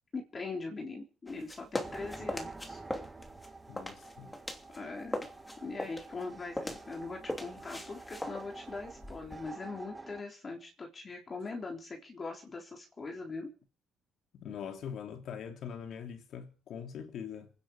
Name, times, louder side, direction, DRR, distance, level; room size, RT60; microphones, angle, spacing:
voice 1, 0.1-2.8 4.7-5.3 5.6-13.5, left 3 dB, 30° left, 3.7 m, -41 dB
sound 1, 1.3-4.8 5.1-9.5, left 1 dB, 10° left, 2.9 m, -40 dB
sound 2, 1.8-10.2, right 3 dB, 15° right, 1.8 m, -48 dB
voice 2, 3.7-4.3 14.3-17.5, left 7 dB, 65° left, 3.3 m, -42 dB
27.0 x 10.0 x 5.0 m
cardioid pair, 115°, 0 cm